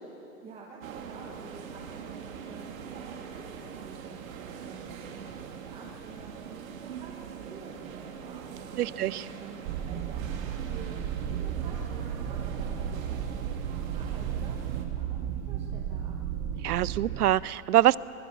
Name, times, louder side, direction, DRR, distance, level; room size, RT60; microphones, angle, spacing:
voice 1, 0.4-8.7 9.4-16.2, right 4 dB, 15° right, -2 dB, 1.3 m, -49 dB
sound 1, 0.8-14.8, right 6 dB, 65° right, 2.7 m, -42 dB
voice 2, 8.8-9.3 16.6-18.0, right 13 dB, 90° right, 20 dB, 0.7 m, -24 dB
sound 2, 9.6-17.3, right 9 dB, 30° right, 0.9 m, -34 dB
23.5 x 21.0 x 7.1 m, 2.8 s
hypercardioid pair, 160°, 44 cm